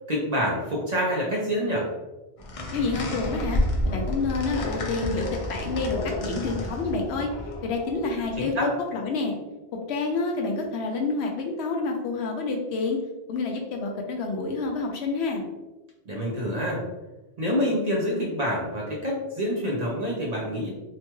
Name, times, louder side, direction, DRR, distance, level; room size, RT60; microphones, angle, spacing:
voice 1, 0.1-1.9 8.4-8.7 16.1-16.8 17.4-20.7, equal, 45° right, -3 dB, 0.6 m, -27 dB
sound 1, 2.4-8.5, left 1 dB, 45° left, 0.4 m, -30 dB
voice 2, 2.7-3.6 3.9-7.3 7.6-9.3 9.9-13.0 13.3-15.4, left 3 dB, 75° left, 2 dB, 0.8 m, -28 dB
2.9 x 2.2 x 2.9 m, 1.1 s
omnidirectional pair, 1.1 m